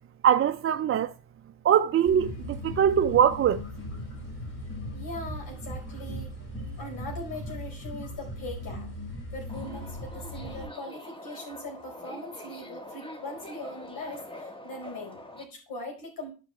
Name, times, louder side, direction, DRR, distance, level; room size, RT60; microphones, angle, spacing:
voice 1, 0.2-1.1 1.6-3.6, right 9 dB, 35° right, 0.5 m, -22 dB
sound 1, 2.0-10.7, equal, 35° left, 5.4 m, -38 dB
voice 2, 4.9-6.3 6.8-8.9 9.3-16.3, left 1 dB, 60° left, 4.6 m, -40 dB
Subway metro underground, 9.5-15.4, left 1 dB, 15° left, 1.5 m, -44 dB
14.0 x 5.0 x 3.2 m
supercardioid pair, 85°, 39 cm